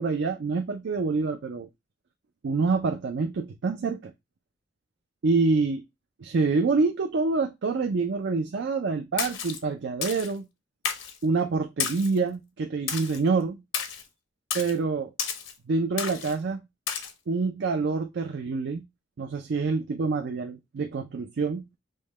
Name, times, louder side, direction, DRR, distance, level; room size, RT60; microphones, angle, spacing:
voice 1, 0.0-1.7 2.4-4.1 5.2-5.8 6.2-10.5 11.2-13.6 14.5-15.1 15.7-16.6 17.3-18.8 19.2-21.6, right 4 dB, 65° right, 0.4 m, -26 dB
Splash splatter, 9.2-9.6 10.0-10.3 10.8-11.2 11.8-12.2 12.9-13.2 13.7-14.0 14.5-14.7 15.2-15.5 16.0-16.3 16.9-17.1, left 7 dB, 85° left, 0.7 m, -31 dB
5.2 x 2.1 x 3.1 m
head